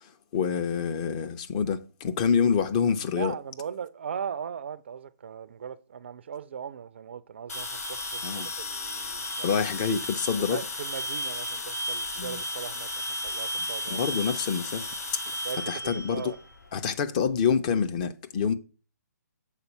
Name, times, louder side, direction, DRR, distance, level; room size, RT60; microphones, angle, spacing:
voice 1, 0.0-3.3 8.2-8.5 9.4-10.6 12.2-12.4 13.9-14.9 15.7-16.3 16.7-18.5, left 6 dB, 25° left, 0.5 m, -27 dB
voice 2, 3.2-9.6 10.4-12.9 13.2-14.0 15.4-16.4, right 7 dB, 40° right, 0.4 m, -38 dB
sound 1, 7.5-16.7, left 1 dB, 60° left, 1.8 m, -34 dB
6.5 x 4.1 x 6.4 m
figure-of-eight pair, 135°, 9 cm